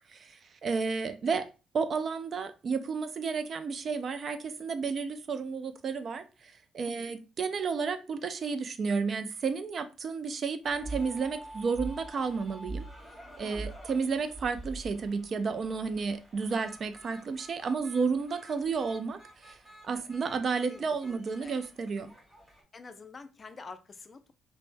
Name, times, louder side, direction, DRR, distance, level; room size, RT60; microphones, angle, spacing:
voice 1, 0.1-1.5 1.7-12.8 13.4-19.6 19.8-22.1, right 5 dB, 50° right, 0.3 m, -32 dB
sound 1, 10.6-22.6, right 2 dB, ahead, 1.6 m, -46 dB
voice 2, 20.7-21.6 22.7-24.3, left 4 dB, 35° left, 0.4 m, -48 dB
3.3 x 2.0 x 2.5 m
cardioid pair, 90°, 0 cm